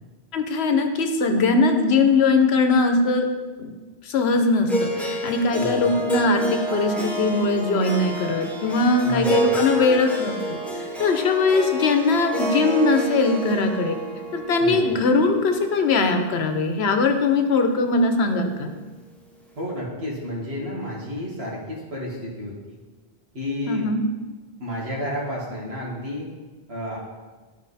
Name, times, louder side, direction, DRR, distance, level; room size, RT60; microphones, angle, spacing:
voice 1, 0.3-3.3 3.6-3.7 4.1-10.3 11.0-14.0 14.3-18.7 23.7-24.0, left 3 dB, 85° left, 6 dB, 1.1 m, -21 dB
Harp, 4.7-16.8, right 1 dB, ahead, 0.9 m, -29 dB
voice 2, 5.6-6.0 9.0-9.5 14.6-15.0 19.6-22.8 23.3-23.9 24.6-26.3 26.7-27.0, equal, 80° right, -5 dB, 2.2 m, -31 dB
11.0 x 4.5 x 4.1 m, 1.3 s
omnidirectional pair, 1.0 m